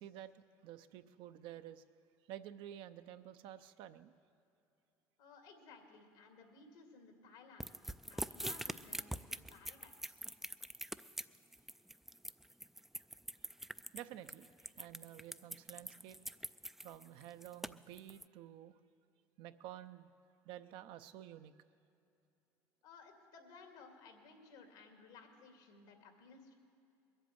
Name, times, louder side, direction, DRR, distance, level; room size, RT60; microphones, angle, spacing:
voice 1, 0.0-1.8 2.3-4.1 13.9-16.2 16.8-18.8 19.4-20.1 20.4-21.5, right 12 dB, 70° right, 10 dB, 0.7 m, -51 dB
voice 2, 5.2-7.7 8.1-10.2 22.8-26.5, left 4 dB, 85° left, 3 dB, 2.3 m, -58 dB
sound 1, 7.6-18.2, right 1 dB, 5° right, 0.3 m, -44 dB
21.0 x 8.1 x 8.0 m, 2.7 s
supercardioid pair, 95°, 9 cm